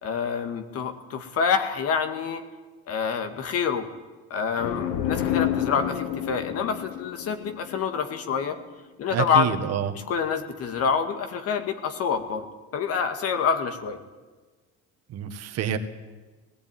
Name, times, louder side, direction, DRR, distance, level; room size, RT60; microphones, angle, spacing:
voice 1, 0.0-2.4 2.9-3.9 4.3-8.6 9.0-9.6 9.9-12.5 12.7-14.0, left 6 dB, 55° left, 7 dB, 2.1 m, -27 dB
sound 1, 4.6-8.2, left 11 dB, 85° left, 1.5 m, -29 dB
voice 2, 9.1-9.9 15.1-15.8, right 10 dB, 55° right, 7 dB, 1.8 m, -27 dB
19.0 x 15.5 x 9.2 m, 1.3 s
cardioid pair, 115°, 30 cm